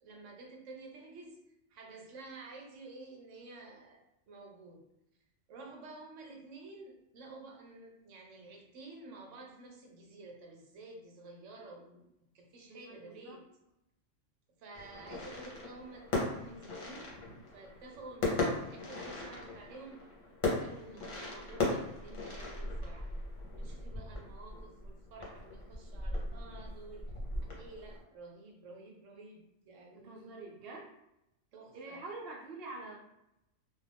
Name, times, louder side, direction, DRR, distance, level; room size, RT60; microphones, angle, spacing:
voice 1, 0.0-1.4 1.7-4.8 5.5-12.1 12.3-13.4 14.6-17.1 17.5-20.1 20.4-23.1 23.5-27.1 27.4-30.4 31.5-32.0, right 2 dB, 85° right, 1 dB, 1.0 m, -51 dB
voice 2, 12.7-13.4 30.0-30.9 31.7-33.0, right 2 dB, 55° right, -3 dB, 0.9 m, -46 dB
sound 1, 14.7-28.0, left 2 dB, 45° left, 0.8 m, -38 dB
2.4 x 2.4 x 3.4 m, 0.85 s
omnidirectional pair, 1.2 m